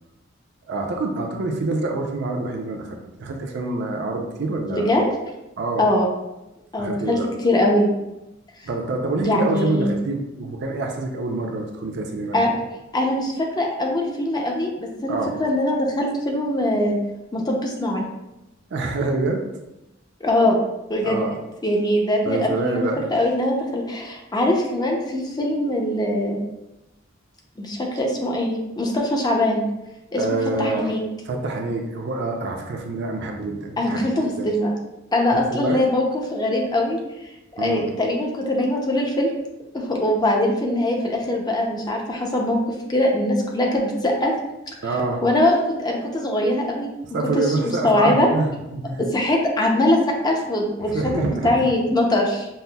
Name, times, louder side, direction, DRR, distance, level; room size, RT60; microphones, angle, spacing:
voice 1, 0.7-5.0 5.6-5.9 6.8-7.3 8.6-12.6 15.1-15.4 18.7-19.4 21.0-21.4 22.2-23.1 30.1-30.9 31.3-34.5 35.5-36.0 37.6-37.9 44.8-45.2 47.1-49.1 50.9-51.5, right 2 dB, 60° right, 2 dB, 0.5 m, -26 dB
voice 2, 4.7-5.0 5.8-6.1 6.7-7.2 7.4-7.9 9.2-9.9 12.3-12.5 12.9-17.0 17.3-18.0 20.2-20.6 20.9-21.3 21.6-26.4 27.6-29.6 30.1-31.0 33.8-34.7 35.1-36.0 36.3-37.0 37.5-39.3 39.7-42.6 42.9-44.3 45.2-46.9 47.3-47.4 47.8-48.3 49.0-52.5, left 1 dB, 20° left, 0 dB, 0.5 m, -22 dB
5.3 x 2.0 x 2.2 m, 0.94 s
head